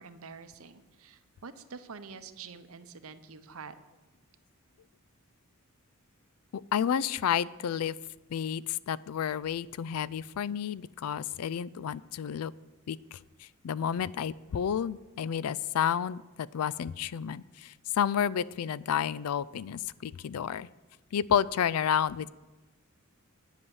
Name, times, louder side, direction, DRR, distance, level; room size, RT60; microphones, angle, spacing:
voice 1, 0.0-3.7, right 5 dB, 70° right, 11 dB, 0.8 m, -47 dB
voice 2, 6.5-7.9 8.3-12.5 12.9-13.2 13.6-20.7 21.1-22.3, left 8 dB, 80° left, 20 dB, 0.4 m, -30 dB
9.6 x 8.2 x 7.1 m, 1.2 s
head